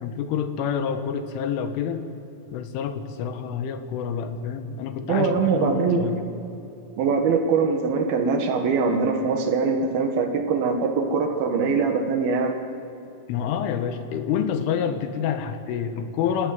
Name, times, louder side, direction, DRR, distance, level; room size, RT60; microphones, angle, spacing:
voice 1, 0.0-2.0 2.5-6.2 13.3-16.5, left 7 dB, 80° left, 8 dB, 3.7 m, -28 dB
voice 2, 5.1-6.2 7.0-12.6, right 5 dB, 60° right, 4 dB, 2.8 m, -22 dB
26.5 x 17.0 x 9.3 m, 2.7 s
omnidirectional pair, 5.7 m